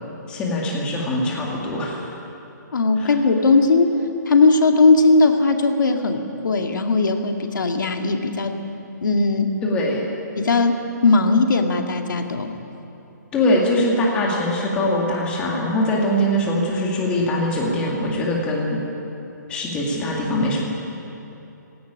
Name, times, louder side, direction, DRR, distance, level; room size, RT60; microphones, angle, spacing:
voice 1, 0.3-2.1 3.0-3.1 9.6-10.1 13.3-18.8 19.5-20.6, left 1 dB, 10° left, -2 dB, 2.2 m, -22 dB
voice 2, 2.7-3.9 4.3-8.6 9.0-9.5 10.4-12.5, left 3 dB, 80° left, 4 dB, 2.2 m, -18 dB
17.0 x 17.0 x 10.0 m, 3.0 s
hypercardioid pair, 170°, 10 cm